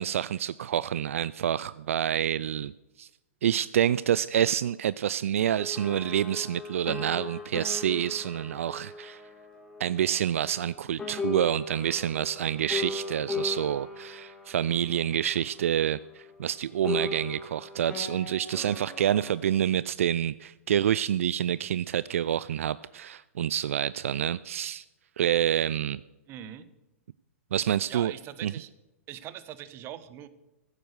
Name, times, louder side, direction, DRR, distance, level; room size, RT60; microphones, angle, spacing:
voice 1, 0.0-2.7 3.0-3.1 3.4-9.2 9.8-24.8 25.2-26.0 27.5-28.1 28.4-28.5, right 10 dB, 70° right, 18 dB, 0.3 m, -27 dB
sound 1, 5.6-10.7 11.0-16.5 16.8-19.4, left 3 dB, 10° left, 2.5 m, -38 dB
voice 2, 26.3-26.7 27.7-28.7 29.1-30.3, right 11 dB, 30° right, 14 dB, 1.0 m, -42 dB
15.0 x 9.1 x 6.5 m, 1.0 s
hypercardioid pair, 115°, 8 cm